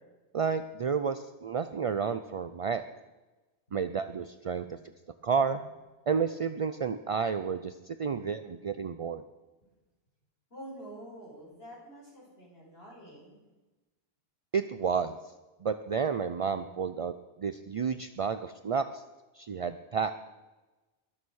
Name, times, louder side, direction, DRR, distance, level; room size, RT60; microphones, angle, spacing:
voice 1, 0.3-2.8 3.7-4.6 5.2-5.6 6.1-9.2 14.5-15.2 15.6-17.1 17.4-19.0 19.4-20.1, right 6 dB, 50° right, 10 dB, 0.4 m, -31 dB
voice 2, 10.5-13.4, right 1 dB, 60° left, -4 dB, 5.7 m, -47 dB
21.5 x 7.2 x 6.4 m, 1.1 s
omnidirectional pair, 1.2 m